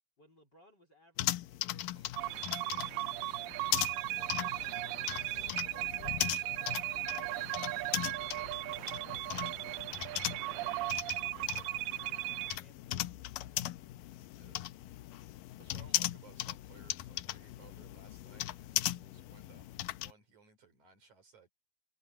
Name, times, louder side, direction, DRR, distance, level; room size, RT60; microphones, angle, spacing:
voice 1, 0.2-2.0 10.4-13.7, equal, 25° left, 3.6 m, -66 dB
sound 1, 1.2-20.1, left 16 dB, 90° left, 1.9 m, -39 dB
voice 2, 1.9-4.8 5.2-10.9 14.4-14.7 15.6-21.5, right 6 dB, 45° right, 5.6 m, -62 dB
sound 2, 2.2-12.6, right 19 dB, 80° right, 2.3 m, -37 dB
omnidirectional pair, 4.8 m